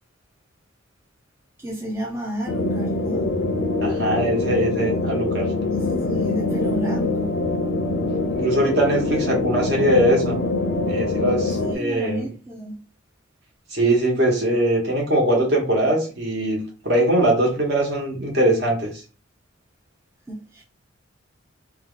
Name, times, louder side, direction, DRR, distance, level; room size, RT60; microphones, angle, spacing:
voice 1, 1.6-3.3 5.8-7.4 11.6-12.8 20.3-20.6, right 1 dB, 15° right, 0.5 m, -32 dB
sound 1, 2.5-11.7, left 2 dB, 55° left, 0.5 m, -24 dB
voice 2, 3.8-5.5 8.3-10.4 10.9-12.3 13.7-18.9, right 1 dB, 55° right, 1.1 m, -21 dB
2.8 x 2.2 x 3.8 m
head